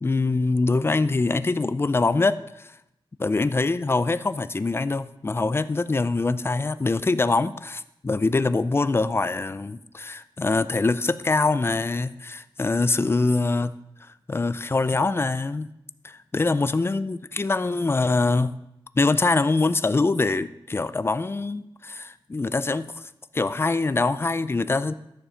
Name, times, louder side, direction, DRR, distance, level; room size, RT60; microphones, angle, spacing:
voice 1, 0.0-2.7 3.2-13.7 14.3-15.7 16.0-18.5 19.0-23.0 23.3-24.9, left 3 dB, 25° left, 13 dB, 0.4 m, -24 dB
13.0 x 7.0 x 5.1 m, 0.83 s
wide cardioid pair, 125°, 9 cm